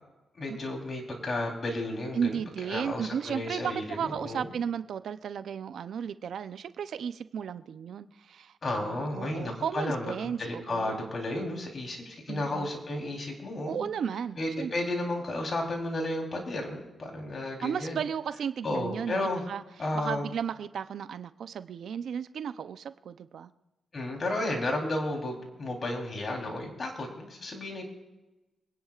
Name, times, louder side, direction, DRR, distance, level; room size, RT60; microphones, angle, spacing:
voice 1, 0.4-2.4 2.7-4.5 8.6-13.8 14.4-18.0 18.6-19.4 19.8-20.2 23.9-27.8, left 1 dB, 45° left, 1 dB, 3.8 m, -33 dB
voice 2, 2.1-11.1 12.3-12.7 13.6-14.9 17.6-23.5, right 7 dB, 75° right, 12 dB, 0.7 m, -34 dB
26.0 x 10.5 x 2.5 m, 1.0 s
cardioid pair, 65°, 0 cm